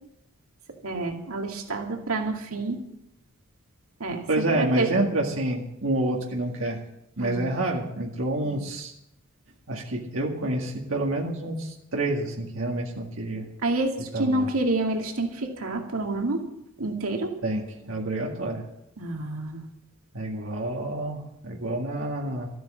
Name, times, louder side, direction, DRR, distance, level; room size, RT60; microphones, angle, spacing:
voice 1, 0.8-2.8 4.0-4.9 7.2-7.5 8.4-8.6 13.6-16.4 16.8-17.3 19.0-19.6, right 2 dB, 85° right, 2 dB, 2.2 m, -28 dB
voice 2, 4.3-6.8 7.2-8.9 9.7-13.5 14.1-14.5 17.4-18.6 20.1-22.5, right 1 dB, 70° right, -1 dB, 2.0 m, -28 dB
13.5 x 9.3 x 7.6 m, 0.81 s
head